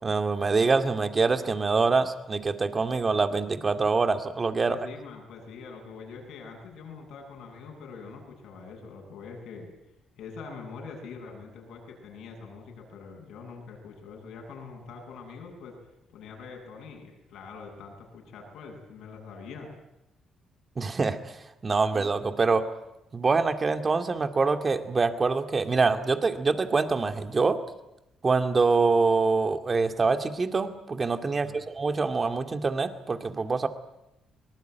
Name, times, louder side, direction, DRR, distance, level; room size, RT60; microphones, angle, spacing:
voice 1, 0.0-4.8 20.8-21.3 21.6-22.6 23.1-27.6 28.2-33.7, right 4 dB, 35° right, 8 dB, 2.2 m, -25 dB
voice 2, 4.7-9.7 10.2-15.8 16.1-19.7 31.3-31.6, left 5 dB, 80° left, 1 dB, 7.7 m, -44 dB
24.5 x 19.5 x 9.2 m, 0.89 s
cardioid pair, 90°, 0 cm